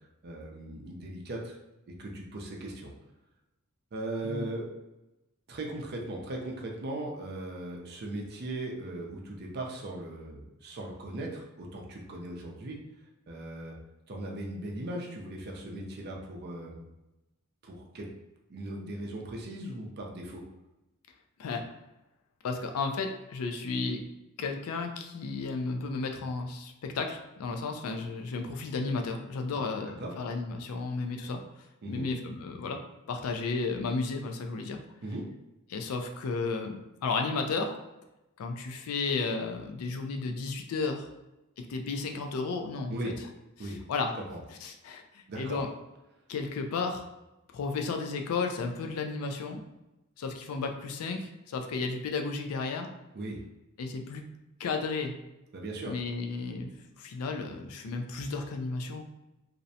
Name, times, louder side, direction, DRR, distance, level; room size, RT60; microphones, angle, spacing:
voice 1, 0.2-1.6 1.9-2.9 3.9-4.7 5.5-12.8 13.3-13.8 14.1-16.8 17.6-18.1 18.5-20.4 30.0-30.1 31.8-32.1 35.0-35.3 42.9-43.1 43.6-43.8 44.3-44.4 45.3-45.6 53.1-53.4 55.5-56.0, right 1 dB, 50° right, 0 dB, 0.5 m, -38 dB
voice 2, 22.4-24.0 24.4-31.4 31.9-32.8 33.1-34.8 35.7-37.8 38.4-41.1 41.6-43.0 43.6-44.1 44.6-45.7 46.3-47.1 47.5-49.6 50.2-52.9 53.8-54.2 54.6-55.1 55.9-56.7 56.9-59.0, left 4 dB, 80° left, 4 dB, 0.4 m, -33 dB
2.5 x 2.1 x 2.6 m, 0.96 s
head